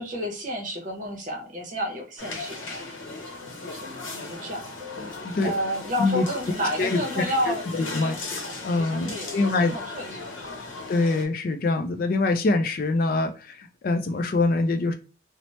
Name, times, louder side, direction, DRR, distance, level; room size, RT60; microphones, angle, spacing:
voice 1, 0.0-3.2 3.7-8.2 8.7-10.6, equal, 40° right, 0.7 m, -32 dB
sound 1, 2.2-11.2, left 3 dB, 85° left, 0.8 m, -37 dB
voice 2, 5.2-5.5 6.0-6.2 6.8-8.2 8.4-9.7 10.9-14.9, left 3 dB, 45° left, 0.3 m, -24 dB
2.8 x 2.1 x 2.9 m
head